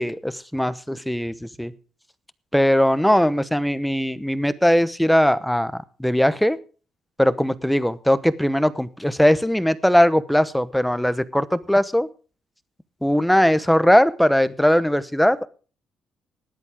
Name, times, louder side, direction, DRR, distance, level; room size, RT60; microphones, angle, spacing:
voice 1, 0.0-1.7 2.5-5.7 6.0-6.6 7.2-12.1 13.0-15.5, equal, ahead, 14 dB, 0.9 m, -19 dB
18.5 x 11.5 x 3.6 m, 0.37 s
cardioid pair, 150°, 0 cm